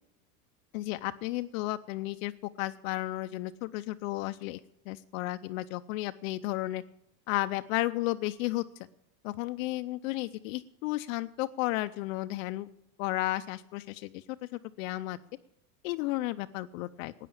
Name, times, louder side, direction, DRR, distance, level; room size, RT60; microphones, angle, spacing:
voice 1, 0.7-2.3 2.6-4.6 4.9-6.8 7.3-8.6 9.2-12.7 13.0-15.2 15.8-17.1, left 17 dB, 60° left, 10 dB, 0.7 m, -33 dB
12.5 x 9.3 x 8.5 m, 0.83 s
supercardioid pair, 150°, 46 cm